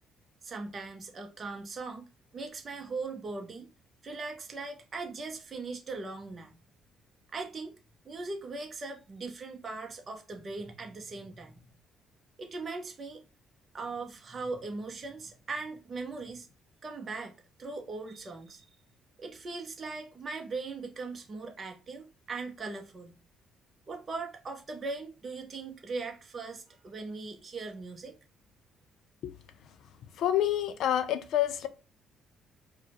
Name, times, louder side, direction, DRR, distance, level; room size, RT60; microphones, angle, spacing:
voice 1, 0.4-2.0 2.3-3.7 4.0-6.6 7.3-7.7 8.0-11.6 12.4-13.2 13.7-16.5 16.8-18.7 19.2-23.2 23.9-28.1, right 3 dB, 35° right, 0.7 m, -39 dB
voice 2, 30.2-31.7, left 11 dB, 70° left, 0.5 m, -27 dB
4.6 x 2.1 x 2.9 m
cardioid pair, 105°, 0 cm